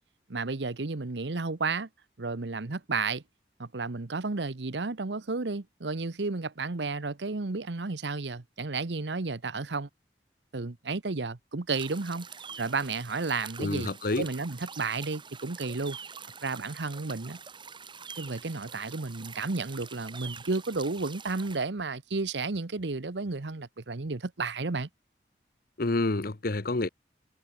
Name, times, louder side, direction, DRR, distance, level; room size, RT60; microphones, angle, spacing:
voice 1, 0.3-1.9 2.2-3.2 3.6-9.9 10.5-12.3 12.6-13.9 14.2-16.0 16.4-17.4 18.2-24.9, right 3 dB, 85° right, 1.0 m, -32 dB
sound 1, 11.7-21.6, right 6 dB, 30° right, 2.2 m, -45 dB
voice 2, 13.6-14.3 25.8-26.9, left 2 dB, 55° left, 1.0 m, -28 dB
head